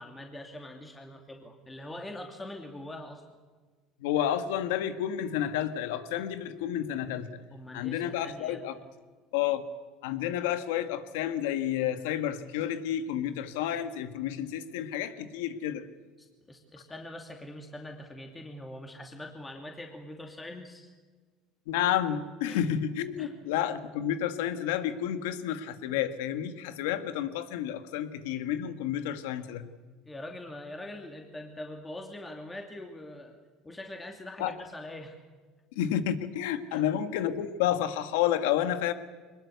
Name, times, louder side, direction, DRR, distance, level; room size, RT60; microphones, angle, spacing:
voice 1, 0.0-3.2 7.5-8.8 16.2-20.9 22.4-22.6 23.2-23.3 30.1-33.4 33.6-35.2 36.7-36.8, left 1 dB, 15° left, 3 dB, 2.7 m, -43 dB
voice 2, 4.0-7.3 7.7-8.8 9.3-9.6 10.0-15.9 21.7-29.6 34.4-34.5 35.7-38.9, left 10 dB, 85° left, 10 dB, 1.6 m, -30 dB
23.5 x 20.5 x 8.2 m, 1.4 s
supercardioid pair, 110°, 0 cm